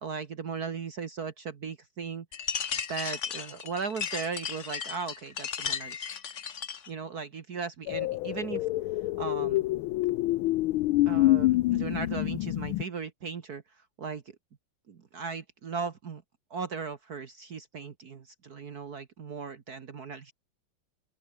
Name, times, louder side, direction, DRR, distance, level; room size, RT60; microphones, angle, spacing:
voice 1, 0.0-2.3 2.9-6.1 6.9-8.7 9.2-9.6 11.1-13.6 14.0-14.4 14.9-16.2 16.5-20.3, right 5 dB, 50° right, 1.9 m, -37 dB
sound 1, 2.3-6.9, left 7 dB, 45° left, 1.3 m, -35 dB
sound 2, 7.9-12.8, left 17 dB, 85° left, 1.5 m, -27 dB
open air
omnidirectional pair, 2.2 m